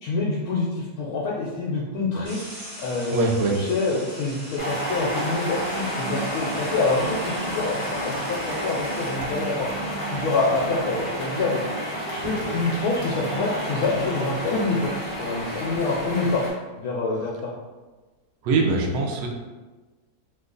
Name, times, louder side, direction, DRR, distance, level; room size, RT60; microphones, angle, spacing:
voice 1, 0.0-2.4 2.8-9.7 10.1-11.6 12.1-14.9 15.2-16.4 16.8-17.5, left 3 dB, 75° left, -4 dB, 1.0 m, -26 dB
sound 1, 2.2-9.6 11.7-11.8 12.2-13.0 13.7-13.8 14.2-16.2, equal, 65° right, 1.5 m, -41 dB
voice 2, 3.1-3.6 18.4-19.3, right 3 dB, 85° right, 1 dB, 1.1 m, -22 dB
sound 2, 4.6-16.5, right 1 dB, 30° left, 0.7 m, -30 dB
sound 3, 9.5-11.6 12.0-14.7 15.1-16.1, equal, 45° right, 0.7 m, -40 dB
2.9 x 2.3 x 3.7 m, 1.3 s
omnidirectional pair, 1.6 m